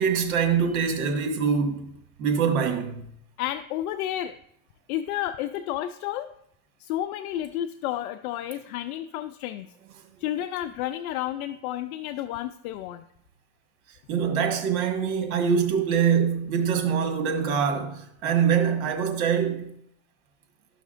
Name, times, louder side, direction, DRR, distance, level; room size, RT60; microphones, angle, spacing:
voice 1, 0.0-1.8 2.2-3.0 14.1-19.7, right 7 dB, 85° right, 1.5 m, -24 dB
voice 2, 3.4-4.4 4.9-6.3 6.8-9.7 10.2-13.0, left 12 dB, 85° left, 0.5 m, -31 dB
12.5 x 5.8 x 2.5 m
supercardioid pair, 85°, 43 cm